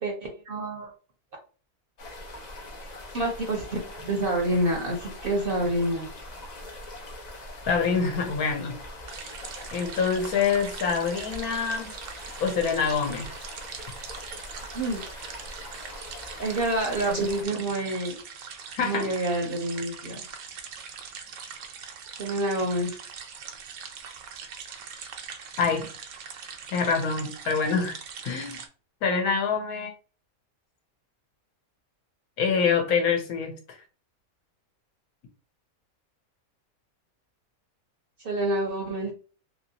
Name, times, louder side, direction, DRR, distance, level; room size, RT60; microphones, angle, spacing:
voice 1, 0.0-0.9 3.1-6.1 14.7-15.3 16.4-18.2 18.8-20.2 22.2-23.0 38.2-39.1, right 1 dB, 55° right, 0.7 m, -28 dB
sound 1, 2.0-17.4, left 1 dB, 55° left, 0.4 m, -42 dB
voice 2, 7.7-8.8 9.7-11.9 12.4-13.3 18.7-19.1 19.4-19.5 25.6-25.9 26.7-28.0 28.2-28.6 29.0-29.9 32.4-33.5, left 5 dB, 85° left, 1.2 m, -25 dB
sound 2, 9.1-28.7, right 6 dB, 75° right, 1.0 m, -42 dB
3.0 x 2.8 x 2.7 m
omnidirectional pair, 1.5 m